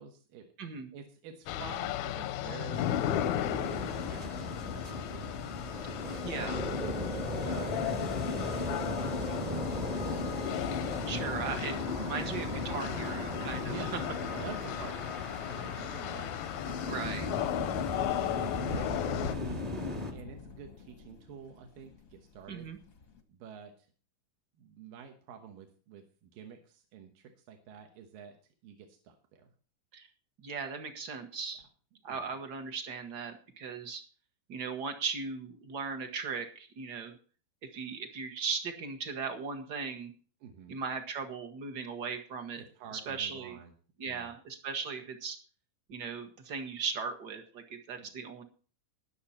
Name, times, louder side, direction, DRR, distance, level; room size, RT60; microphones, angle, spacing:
voice 1, 0.0-6.7 7.3-9.9 10.1-10.5 11.2-11.6 12.5-12.7 13.6-17.5 18.1-19.6 20.1-22.7 23.3-23.9 24.6-28.4 28.6-29.5 32.1-32.4 40.4-40.8 42.6-43.7 44.0-44.3 48.0-48.1, right 7 dB, 85° right, 4 dB, 3.0 m, -49 dB
voice 2, 0.6-0.9 5.8-5.9 6.2-6.6 11.1-13.7 16.9-17.3 22.5-22.8 29.9-30.1 30.4-31.6 32.0-34.0 34.5-37.2 37.6-40.1 40.7-42.6 42.9-43.6 44.0-45.4 45.9-48.4, right 5 dB, 55° right, 6 dB, 1.1 m, -38 dB
sound 1, 1.5-19.3, left 13 dB, 80° left, 1.7 m, -36 dB
sound 2, 2.7-20.1, left 1 dB, 20° right, 1.0 m, -37 dB
sound 3, 7.2-23.2, left 4 dB, 60° left, 0.8 m, -49 dB
20.0 x 7.1 x 4.3 m, 0.41 s
omnidirectional pair, 3.9 m